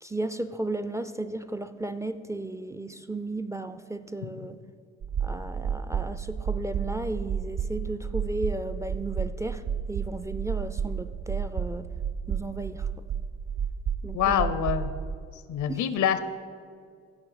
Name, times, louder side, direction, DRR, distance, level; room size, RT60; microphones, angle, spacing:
voice 1, 0.0-4.6 5.2-11.9 12.3-12.9 14.0-14.5 15.7-15.8, right 2 dB, 10° right, 11 dB, 0.4 m, -34 dB
sound 1, 5.0-15.1, right 7 dB, 60° right, 0.7 m, -32 dB
voice 2, 14.1-14.9 15.5-16.2, left 9 dB, 75° left, 12 dB, 0.7 m, -25 dB
16.0 x 5.6 x 4.9 m, 2.1 s
cardioid pair, 90°, 30 cm